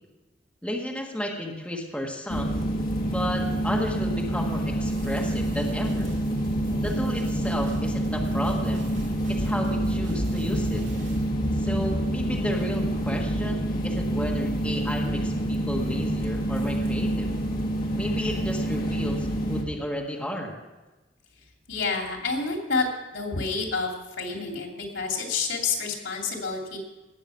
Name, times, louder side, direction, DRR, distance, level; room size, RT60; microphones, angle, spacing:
voice 1, 0.6-2.6 3.0-6.1 6.8-8.9 9.3-10.8 11.6-17.3 17.9-20.6, equal, 5° left, -1 dB, 1.6 m, -32 dB
sound 1, 2.3-19.6, right 1 dB, 50° left, 1.7 m, -27 dB
sound 2, 4.8-11.2, right 1 dB, 85° right, 2.7 m, -44 dB
voice 2, 21.7-22.9 23.1-23.9 24.2-26.8, left 4 dB, 90° left, 1 dB, 2.6 m, -28 dB
18.5 x 7.0 x 5.8 m, 1.1 s
head